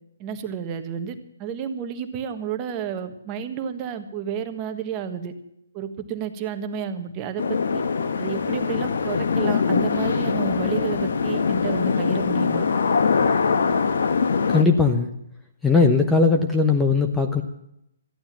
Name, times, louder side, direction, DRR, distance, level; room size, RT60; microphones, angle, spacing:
voice 1, 0.2-5.3 5.7-7.8 8.2-12.7, right 8 dB, 25° right, 7 dB, 1.5 m, -31 dB
sound 1, 7.4-14.6, left 5 dB, 70° left, 1.2 m, -22 dB
voice 2, 14.5-15.1 15.6-17.4, left 4 dB, 5° left, 4 dB, 1.0 m, -19 dB
14.5 x 11.5 x 7.5 m, 0.77 s
hypercardioid pair, 150°, 0 cm